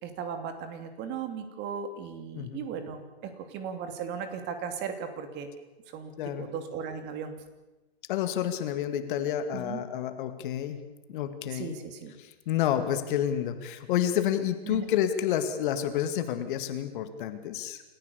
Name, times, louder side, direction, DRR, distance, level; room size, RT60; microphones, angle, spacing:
voice 1, 0.0-5.5 5.9-7.3 9.5-9.8 11.5-12.1 14.7-14.9, right 6 dB, 35° right, 8 dB, 2.8 m, -37 dB
voice 2, 6.2-6.5 8.1-10.8 11.1-11.8 12.2-17.8, left 10 dB, 50° left, 9 dB, 2.3 m, -29 dB
28.0 x 14.5 x 7.0 m, 1.1 s
hypercardioid pair, 120°, 32 cm